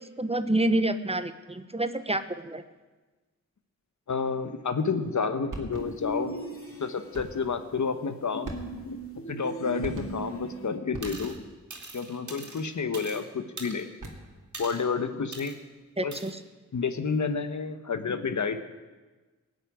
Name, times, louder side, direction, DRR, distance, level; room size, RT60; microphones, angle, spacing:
voice 1, 0.0-2.6 16.0-16.4, right 1 dB, 20° right, 11 dB, 0.9 m, -28 dB
voice 2, 4.1-6.3 6.8-8.5 8.8-11.4 11.9-13.9 14.6-15.5 16.0-16.2 16.7-18.6, left 5 dB, 65° left, 9 dB, 1.2 m, -30 dB
sound 1, 5.5-6.2 7.1-7.5 8.4-9.1 9.8-10.4 10.9-11.6 13.8-14.5, right 2 dB, 80° right, 2.3 m, -41 dB
sound 2, 6.0-7.3 8.5-10.7, right 2 dB, 45° left, 2.4 m, -38 dB
sound 3, 11.0-11.4 11.7-13.2 13.6-14.1 14.5-14.9 15.3-15.6 16.1-16.3, right 3 dB, 60° right, 2.8 m, -42 dB
17.5 x 6.7 x 9.7 m, 1.3 s
cardioid pair, 50°, 31 cm